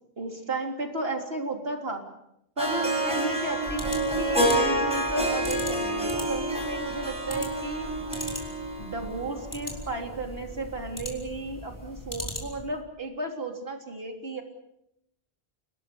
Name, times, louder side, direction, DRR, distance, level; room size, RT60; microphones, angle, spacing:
voice 1, 0.2-2.1 2.6-7.9 8.8-14.4, right 2 dB, 70° right, 3 dB, 3.9 m, -33 dB
Harp, 2.6-9.7, right 1 dB, 5° right, 6.4 m, -28 dB
sound 1, 3.6-12.8, equal, 15° left, 4.6 m, -40 dB
29.5 x 19.5 x 7.0 m, 0.80 s
omnidirectional pair, 1.0 m